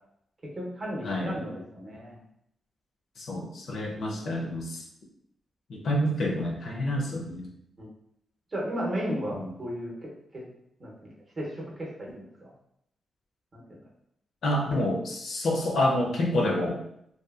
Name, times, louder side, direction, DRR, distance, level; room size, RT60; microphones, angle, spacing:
voice 1, 0.6-2.2 7.8-7.9 8.5-10.5 10.8-12.5 13.5-13.8, equal, 35° right, -3 dB, 0.7 m, -35 dB
voice 2, 3.2-4.8 5.7-7.5 9.3-9.5 14.4-16.8, left 1 dB, 60° left, 0 dB, 0.5 m, -28 dB
2.7 x 2.3 x 2.3 m, 0.75 s
wide cardioid pair, 150°, 0 cm